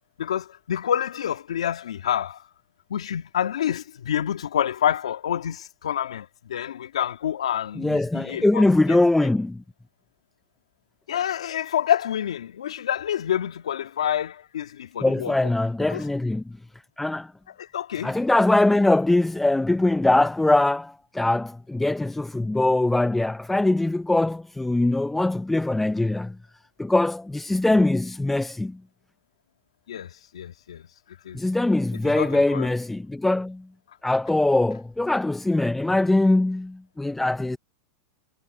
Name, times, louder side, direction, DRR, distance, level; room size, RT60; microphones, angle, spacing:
voice 1, 0.2-2.4 2.9-9.0 11.1-15.5 15.9-16.0 17.6-18.2 29.9-30.9 31.2-31.4 32.0-32.7, left 10 dB, 80° left, 2.1 m, -28 dB
voice 2, 7.8-9.6 15.0-16.4 17.0-17.3 18.0-26.4 26.8-28.8 31.3-33.6 34.0-37.6, left 2 dB, 5° left, 0.6 m, -22 dB
hypercardioid pair, 110°, 3 cm